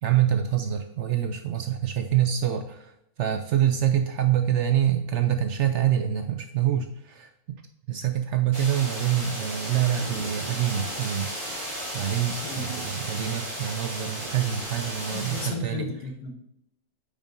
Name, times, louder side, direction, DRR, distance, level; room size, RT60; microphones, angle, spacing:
voice 1, 0.0-7.6 7.9-11.3 11.9-15.9, right 10 dB, 65° right, 7 dB, 0.7 m, -26 dB
sound 1, 8.5-15.5, right 1 dB, 25° right, 2.1 m, -34 dB
voice 2, 15.1-16.3, left 4 dB, 85° left, 4 dB, 1.5 m, -34 dB
8.9 x 5.1 x 2.6 m, 0.80 s
omnidirectional pair, 1.6 m